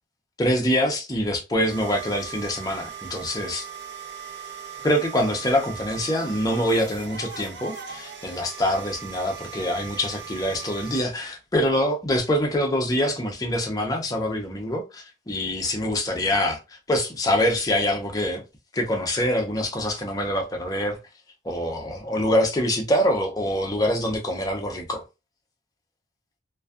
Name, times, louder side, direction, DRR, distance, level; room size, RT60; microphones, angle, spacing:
voice 1, 0.4-3.7 4.8-18.4 18.7-21.0 21.4-25.0, equal, 20° left, 0.4 m, -25 dB
sound 1, 1.7-11.0, right 7 dB, 65° right, 0.7 m, -39 dB
2.5 x 2.2 x 2.3 m
head